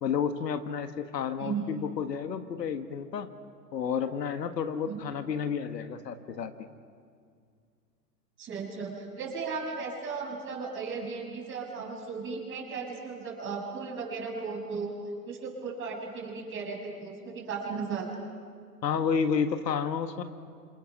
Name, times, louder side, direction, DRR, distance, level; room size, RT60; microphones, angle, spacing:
voice 1, 0.0-3.3 3.7-6.5 18.8-20.2, left 6 dB, 75° left, 8 dB, 1.7 m, -31 dB
voice 2, 8.4-14.9 15.2-18.1, right 5 dB, 25° right, -1 dB, 6.7 m, -36 dB
27.5 x 27.0 x 6.1 m, 2.2 s
hypercardioid pair, 120°, 49 cm